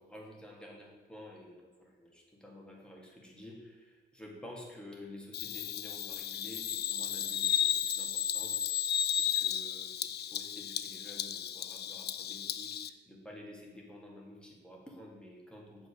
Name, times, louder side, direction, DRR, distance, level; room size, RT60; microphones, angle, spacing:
voice 1, 0.0-8.6 9.0-15.9, left 1 dB, 5° left, -2 dB, 2.4 m, -51 dB
Bird vocalization bird call bird song, 5.3-12.9, left 9 dB, 55° left, 0.5 m, -34 dB
7.6 x 5.5 x 6.8 m, 1.3 s
cardioid pair, 90°, 20 cm